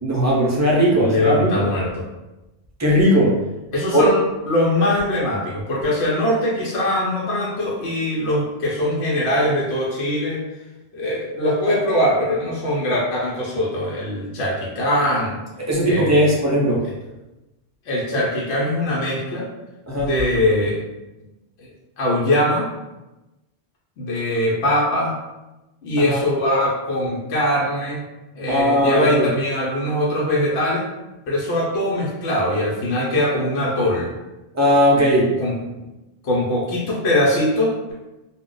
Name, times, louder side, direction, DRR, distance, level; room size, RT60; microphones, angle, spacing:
voice 1, 0.0-1.7 2.8-3.4 3.9-4.1 15.7-16.9 19.9-20.1 26.0-26.2 28.5-29.3 34.5-35.4, equal, 25° right, -4 dB, 0.4 m, -18 dB
voice 2, 1.0-2.0 3.7-4.2 4.5-10.4 10.9-15.4 15.9-16.4 17.8-19.5 19.9-20.8 21.6-21.7 22.0-22.7 24.0-25.1 25.8-28.0 28.4-30.9 31.3-34.1 35.4-35.8 36.2-37.9, left 1 dB, 75° left, -5 dB, 0.9 m, -21 dB
2.4 x 2.1 x 3.7 m, 1.0 s
omnidirectional pair, 1.1 m